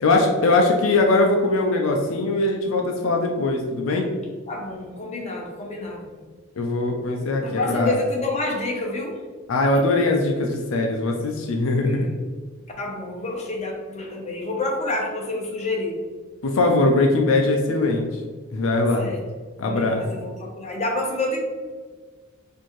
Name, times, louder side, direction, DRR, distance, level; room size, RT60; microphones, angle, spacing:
voice 1, 0.0-4.1 6.6-7.9 9.5-12.1 16.4-18.2 18.5-19.0 19.6-20.0, left 2 dB, 75° left, 2 dB, 0.5 m, -21 dB
voice 2, 4.5-6.1 7.4-9.2 11.9-12.2 12.8-16.0 19.0-19.2 19.6-21.4, left 2 dB, 35° left, -1 dB, 0.7 m, -28 dB
4.4 x 2.6 x 3.0 m, 1.4 s
head